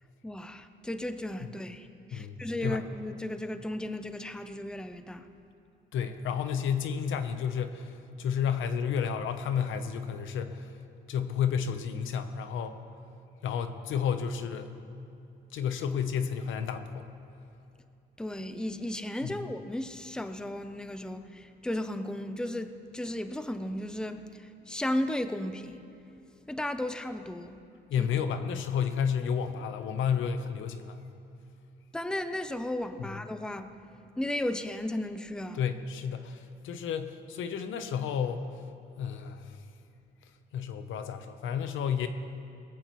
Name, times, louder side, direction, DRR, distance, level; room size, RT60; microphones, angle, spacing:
voice 1, 0.2-5.3 18.2-25.8 26.5-27.6 28.0-28.1 31.9-33.7 34.2-35.6, left 1 dB, 5° left, 9 dB, 0.7 m, -35 dB
voice 2, 2.1-2.8 5.9-10.7 11.1-12.8 13.4-14.8 15.5-17.0 19.2-19.5 27.9-31.0 33.0-33.1 35.5-38.4 39.0-39.6 40.5-42.1, left 7 dB, 80° left, 9 dB, 0.9 m, -31 dB
19.0 x 15.0 x 3.1 m, 2.6 s
cardioid pair, 90°, 20 cm